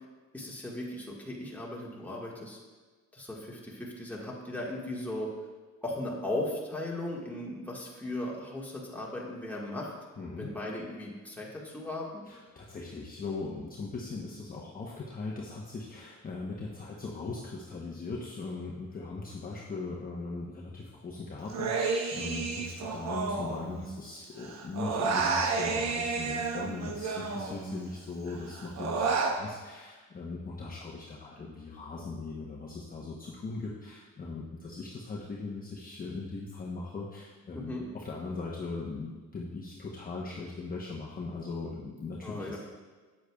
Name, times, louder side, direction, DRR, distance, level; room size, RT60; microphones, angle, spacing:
voice 1, 0.3-2.6 3.1-5.3 5.8-9.9 10.4-12.2 37.5-37.9 42.2-42.6, left 1 dB, 5° left, -4 dB, 1.6 m, -37 dB
voice 2, 10.2-10.5 12.2-42.6, left 3 dB, 30° left, -4 dB, 0.9 m, -39 dB
Human voice, 21.5-24.1 24.4-27.9 28.3-29.4, right 4 dB, 60° right, 0.9 m, -31 dB
8.3 x 7.7 x 2.3 m, 1.4 s
cardioid pair, 90°, 30 cm